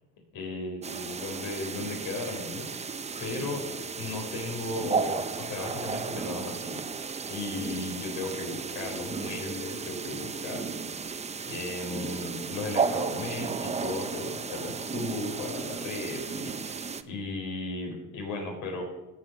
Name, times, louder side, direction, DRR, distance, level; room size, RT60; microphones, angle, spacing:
voice 1, 0.3-2.7 3.2-3.6 4.0-6.9 7.3-11.2 11.5-18.8, left 3 dB, 75° left, 1 dB, 4.3 m, -36 dB
sound 1, 0.8-17.0, right 5 dB, 20° right, 0.7 m, -34 dB
16.5 x 6.2 x 6.1 m, 1.0 s
cardioid pair, 105°, 32 cm